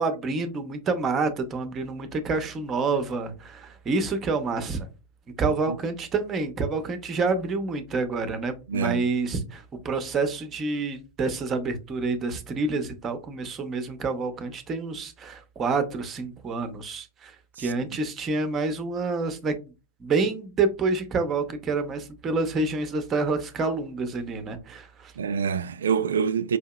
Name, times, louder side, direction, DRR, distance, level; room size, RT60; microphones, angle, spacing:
voice 1, 0.0-4.9 5.4-19.5 20.0-25.1, right 3 dB, 25° right, 0.7 m, -28 dB
voice 2, 5.5-5.8 8.7-9.0 17.6-18.0 25.2-26.6, right 6 dB, 65° right, 0.3 m, -27 dB
4.8 x 2.7 x 2.2 m
figure-of-eight pair, 90°, 0 cm